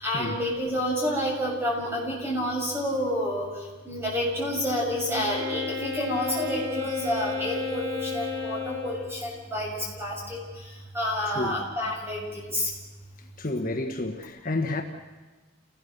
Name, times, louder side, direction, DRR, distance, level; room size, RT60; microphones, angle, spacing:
voice 1, 0.0-3.5 3.8-10.4 10.9-12.7, equal, 10° right, -3 dB, 7.3 m, -29 dB
Wind instrument woodwind instrument, 5.1-9.2, left 5 dB, 85° right, 6.8 m, -33 dB
voice 2, 13.4-14.8, left 2 dB, 40° left, 3 dB, 1.4 m, -30 dB
29.0 x 18.5 x 6.8 m, 1.3 s
head